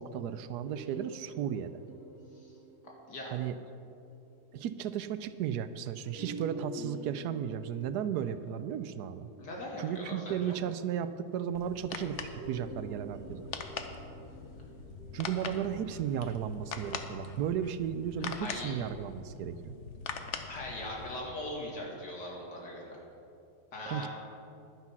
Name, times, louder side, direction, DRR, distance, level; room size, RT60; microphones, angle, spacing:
voice 1, 0.0-1.8 3.3-3.6 4.5-9.3 9.8-13.5 15.1-19.6 23.9-24.1, right 9 dB, 80° right, 12 dB, 1.1 m, -34 dB
sound 1, 0.6-4.5 6.1-10.5 11.9-17.1, right 2 dB, 60° right, 1.9 m, -48 dB
voice 2, 2.8-3.3 9.4-10.5 18.2-18.7 20.5-23.0 23.7-24.1, left 1 dB, 85° left, -2 dB, 2.8 m, -40 dB
sound 2, 11.5-21.2, left 5 dB, 55° left, 1.0 m, -43 dB
11.0 x 9.7 x 6.0 m, 2.7 s
omnidirectional pair, 1.8 m